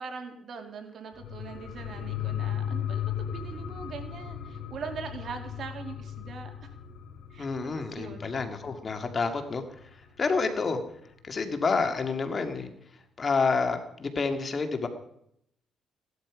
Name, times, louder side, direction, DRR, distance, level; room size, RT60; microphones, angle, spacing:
voice 1, 0.0-6.7 7.3-8.3, right 5 dB, 60° right, 5 dB, 2.5 m, -41 dB
sound 1, 1.1-10.2 10.6-10.7, left 9 dB, 80° left, 2.9 m, -37 dB
voice 2, 7.4-9.6 10.2-10.8 11.2-12.7 13.2-14.9, left 4 dB, 40° left, 6 dB, 2.0 m, -28 dB
16.0 x 12.0 x 5.0 m, 0.73 s
cardioid pair, 90°, 0 cm